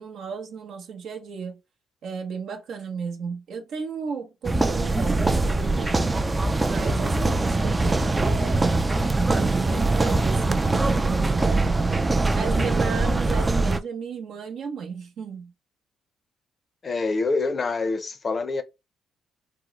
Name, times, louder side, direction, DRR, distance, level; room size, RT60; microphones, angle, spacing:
voice 1, 0.0-1.6 2.0-6.2 6.6-8.9 9.3-12.0 12.3-15.5, right 5 dB, 70° right, 0.7 m, -34 dB
sound 1, 4.4-13.8, right 2 dB, 20° right, 0.3 m, -22 dB
voice 2, 16.8-18.6, left 3 dB, 40° left, 0.5 m, -26 dB
3.6 x 2.0 x 3.0 m
cardioid pair, 90°, 0 cm